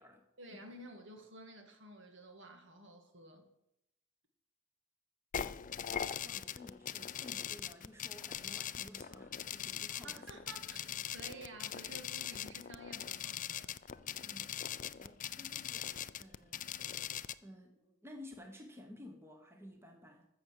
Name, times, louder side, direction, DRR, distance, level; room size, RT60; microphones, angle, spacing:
voice 1, 0.4-3.5 10.0-13.8, right 1 dB, 60° right, 4 dB, 2.1 m, -52 dB
sound 1, 5.3-17.3, left 9 dB, 40° left, 0.4 m, -41 dB
voice 2, 6.2-10.4 10.9-11.0 14.2-14.6 15.0-16.8 17.4-20.3, left 1 dB, 10° right, 3 dB, 1.3 m, -54 dB
14.0 x 7.0 x 6.8 m, 0.83 s
head